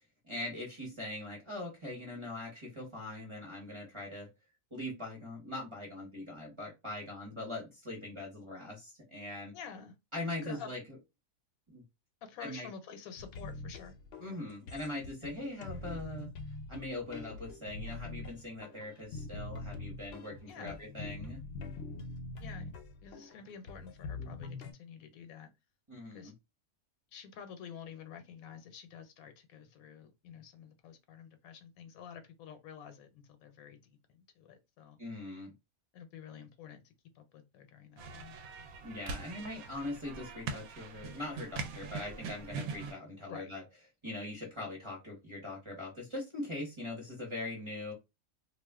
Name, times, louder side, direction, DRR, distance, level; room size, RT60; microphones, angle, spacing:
voice 1, 0.2-4.3 4.7-9.5 10.1-10.8 11.7-11.8 12.4-12.7 14.2-16.3 16.7-21.4 25.9-26.3 35.0-35.5 38.8-43.6 44.0-47.9, left 1 dB, 25° right, 0.8 m, -41 dB
voice 2, 9.5-10.0 10.4-10.7 12.2-13.9 15.2-15.3 20.5-20.8 22.4-22.7 23.0-25.5 26.1-26.3 27.1-35.0 35.9-38.4 43.3-43.5, left 7 dB, 80° left, 1.0 m, -49 dB
sound 1, 13.2-24.7, left 3 dB, 60° left, 0.7 m, -44 dB
sound 2, 38.0-42.9, right 4 dB, 80° right, 1.0 m, -42 dB
2.4 x 2.3 x 3.4 m
omnidirectional pair, 1.5 m